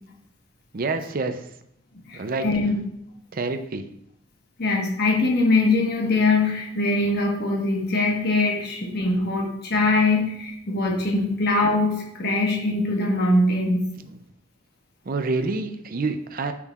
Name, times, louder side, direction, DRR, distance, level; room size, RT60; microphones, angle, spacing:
voice 1, 0.7-1.5 2.1-2.5 3.3-3.8 14.0-14.2 15.1-16.5, right 3 dB, 45° right, 8 dB, 0.5 m, -27 dB
voice 2, 2.1-2.8 4.6-13.9, left 2 dB, 55° left, -1 dB, 1.3 m, -22 dB
8.8 x 6.1 x 2.4 m, 0.75 s
head